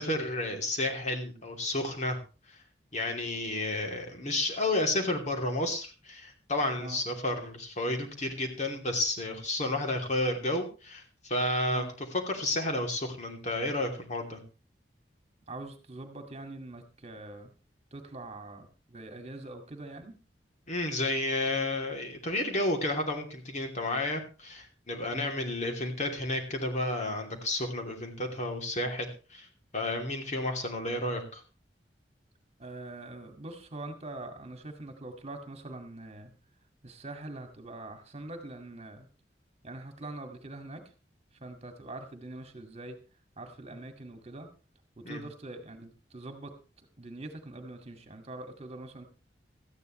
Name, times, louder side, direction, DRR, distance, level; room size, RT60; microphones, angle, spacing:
voice 1, 0.0-2.2 2.5-2.6 2.9-14.4 20.7-29.5 29.7-31.4 45.0-45.2, left 1 dB, 45° left, 3 dB, 2.9 m, -31 dB
voice 2, 15.5-17.5 17.9-20.1 25.1-25.3 32.6-36.3 36.8-39.1 39.6-40.8 41.3-43.0 43.4-44.5 45.0-49.1, right 2 dB, 40° right, 6 dB, 2.1 m, -43 dB
18.0 x 13.5 x 3.2 m, 0.33 s
head